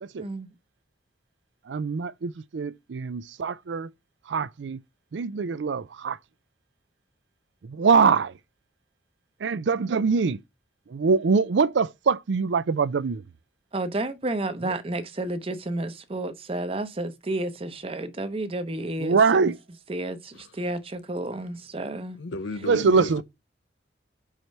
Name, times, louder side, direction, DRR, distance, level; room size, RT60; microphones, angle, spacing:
voice 1, 0.2-0.5 13.7-19.5 19.9-22.2, right 2 dB, 30° right, 0.7 m, -31 dB
voice 2, 1.7-3.9 4.3-4.8 5.1-6.2 7.6-8.3 9.4-10.4 10.9-13.2 14.6-14.7 19.0-19.6 22.6-23.2, right 5 dB, 80° right, 0.4 m, -23 dB
voice 3, 22.2-23.2, left 2 dB, 85° left, 0.6 m, -33 dB
4.9 x 4.4 x 5.3 m
head